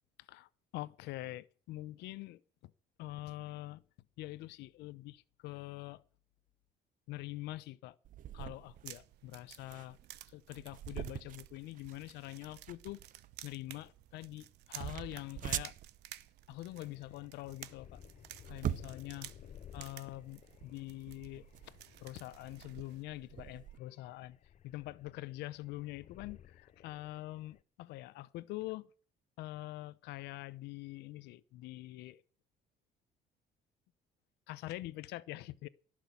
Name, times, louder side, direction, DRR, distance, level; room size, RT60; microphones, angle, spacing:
voice 1, 0.3-2.7 3.0-3.8 4.2-6.0 7.1-8.0 8.3-10.0 10.3-13.0 13.4-15.7 16.5-18.0 18.5-19.3 19.7-24.4 24.6-28.9 29.4-32.2 34.5-35.7, left 17 dB, 90° left, 0.8 m, -45 dB
sound 1, 8.0-23.8, right 11 dB, 50° right, 0.6 m, -45 dB
sound 2, 8.5-23.0, right 15 dB, 85° right, 0.9 m, -55 dB
sound 3, 16.7-27.6, left 9 dB, 45° left, 0.7 m, -57 dB
17.5 x 6.3 x 8.3 m
cardioid pair, 110°, 17 cm